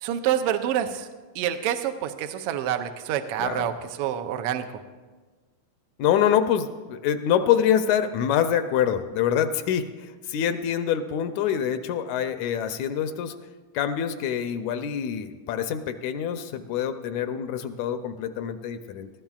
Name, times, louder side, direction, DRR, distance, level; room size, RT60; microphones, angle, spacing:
voice 1, 0.0-1.1 1.3-4.6, right 10 dB, 80° right, 7 dB, 1.4 m, -27 dB
voice 2, 3.4-3.7 6.0-13.3 13.7-19.1, left 9 dB, 80° left, 9 dB, 1.9 m, -25 dB
19.0 x 14.0 x 2.4 m, 1.3 s
omnidirectional pair, 3.3 m